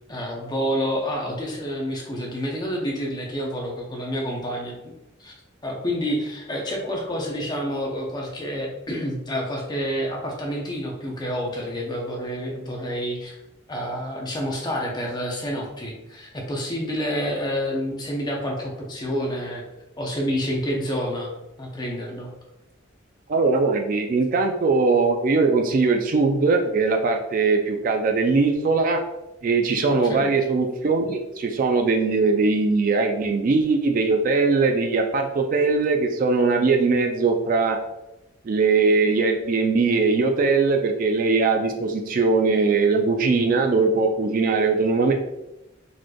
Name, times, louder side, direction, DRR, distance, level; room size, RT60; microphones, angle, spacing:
voice 1, 0.1-4.7 5.2-5.3 5.6-13.4 13.7-19.6 20.0-21.3 21.6-22.3 29.9-30.3, equal, 20° left, -1 dB, 0.7 m, -28 dB
voice 2, 23.3-29.0 29.4-37.8 38.4-45.1, right 4 dB, 45° right, 4 dB, 0.3 m, -21 dB
4.0 x 3.1 x 2.2 m, 0.93 s
head